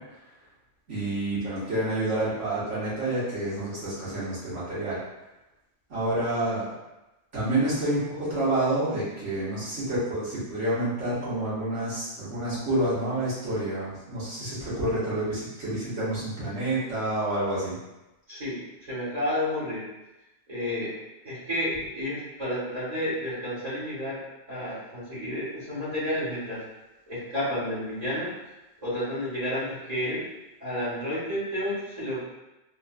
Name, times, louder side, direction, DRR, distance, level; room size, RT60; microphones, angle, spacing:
voice 1, 0.9-5.0 5.9-6.7 7.3-17.8, right 1 dB, 90° right, -11 dB, 1.8 m, -28 dB
voice 2, 18.3-19.8 20.5-20.9 21.2-24.2 24.5-26.6 27.1-28.3 28.8-30.2 30.6-32.2, left 1 dB, 35° right, -10 dB, 1.4 m, -31 dB
3.5 x 2.6 x 2.3 m, 0.99 s
omnidirectional pair, 1.2 m